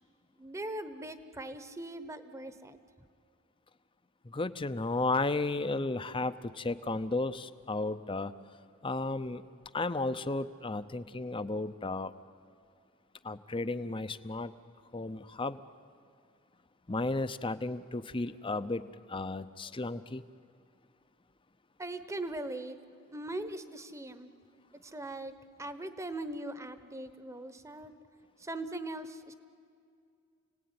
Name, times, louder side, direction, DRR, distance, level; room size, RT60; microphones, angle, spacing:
voice 1, 0.4-2.8 21.8-22.8 23.1-24.3 24.8-25.3 25.6-27.9 28.4-29.3, right 1 dB, 15° right, 11 dB, 1.1 m, -40 dB
voice 2, 4.2-8.3 8.8-9.4 9.7-12.1 13.2-14.5 14.9-15.6 16.9-18.8 19.1-20.2, left 2 dB, 25° left, 13 dB, 0.7 m, -33 dB
29.5 x 18.0 x 9.6 m, 2.4 s
head